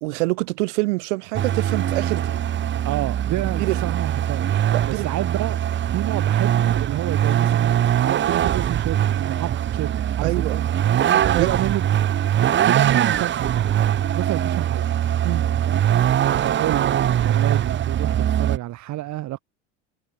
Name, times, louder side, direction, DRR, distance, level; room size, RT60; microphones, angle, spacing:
voice 1, 0.0-2.4 3.6-3.9 4.7-5.1 10.2-10.7 11.0-11.5 15.2-15.5, right 24 dB, 75° right, 1.3 m, -26 dB
Vehicle, 1.3-18.6, right 10 dB, 30° right, 1.1 m, -22 dB
voice 2, 2.8-5.6 5.9-10.5 11.4-11.8 12.4-13.6 14.1-14.9 16.2-19.4, right 16 dB, 50° right, 5.1 m, -29 dB
supercardioid pair, 105°, 35 cm